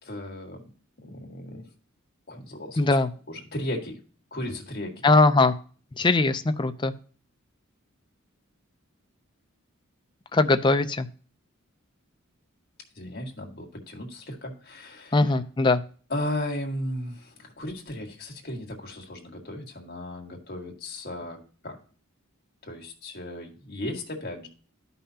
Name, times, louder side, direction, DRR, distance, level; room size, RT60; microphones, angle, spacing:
voice 1, 0.0-0.6 1.0-1.7 2.3-3.0 3.3-4.0 4.3-5.0 12.9-15.2 16.1-21.8 22.6-24.5, left 1 dB, 45° left, 1 dB, 1.7 m, -35 dB
voice 2, 2.8-3.1 5.0-5.5 6.0-6.9 10.3-11.1 15.1-15.8, left 3 dB, 20° left, 9 dB, 0.4 m, -20 dB
12.5 x 5.5 x 2.8 m, 0.41 s
head